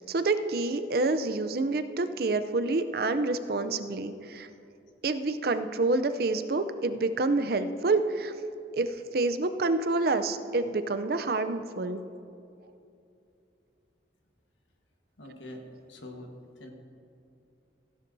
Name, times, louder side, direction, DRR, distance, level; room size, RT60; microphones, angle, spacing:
voice 1, 0.1-4.5 5.0-8.3 8.7-12.0, right 3 dB, 55° right, 10 dB, 0.5 m, -28 dB
voice 2, 15.2-16.3 16.6-16.7, left 1 dB, 90° left, 3 dB, 1.4 m, -44 dB
15.5 x 11.5 x 2.7 m, 2.7 s
head